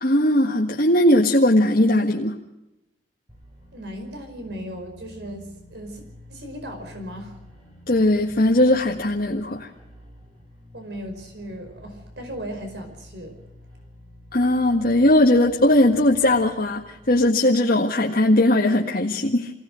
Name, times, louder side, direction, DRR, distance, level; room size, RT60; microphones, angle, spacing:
voice 1, 0.0-2.4 7.9-9.7 14.3-19.5, left 1 dB, 55° left, -1 dB, 1.8 m, -19 dB
sound 1, 3.3-17.3, left 1 dB, 25° right, 7.9 m, -48 dB
voice 2, 3.7-6.0 6.3-7.4 10.7-13.4, equal, 70° right, 5 dB, 5.0 m, -36 dB
25.0 x 17.0 x 6.5 m, 0.93 s
head